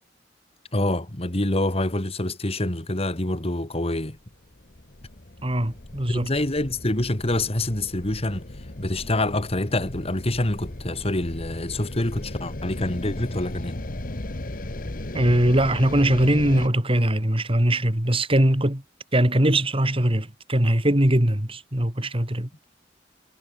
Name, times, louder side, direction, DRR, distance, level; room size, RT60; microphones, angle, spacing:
voice 1, 0.7-4.2 6.1-8.5 8.8-13.8, left 1 dB, 35° left, 2.4 m, -26 dB
sound 1, 4.1-16.7, left 1 dB, 50° left, 1.6 m, -36 dB
voice 2, 5.4-6.3 15.1-18.8 19.1-22.5, right 1 dB, 30° right, 2.8 m, -21 dB
head